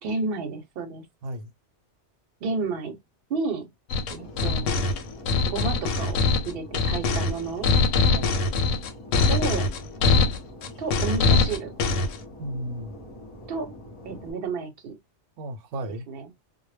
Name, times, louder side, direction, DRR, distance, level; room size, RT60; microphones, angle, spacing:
voice 1, 0.0-1.0 2.4-3.0 3.3-3.7 4.1-4.8 5.4-6.2 6.4-7.7 9.3-9.7 10.1-10.3 10.8-11.7 13.5-13.7 14.0-15.0 16.1-16.3, right 4 dB, 60° right, 0.8 m, -31 dB
sound 1, 3.9-12.2, left 3 dB, 90° left, 0.9 m, -22 dB
Fixed-wing aircraft airplane, 4.1-14.3, left 1 dB, 35° left, 0.6 m, -44 dB
voice 2, 8.1-8.4 12.4-13.0 15.4-16.0, right 1 dB, 85° right, 0.9 m, -34 dB
2.1 x 2.1 x 3.2 m
omnidirectional pair, 1.2 m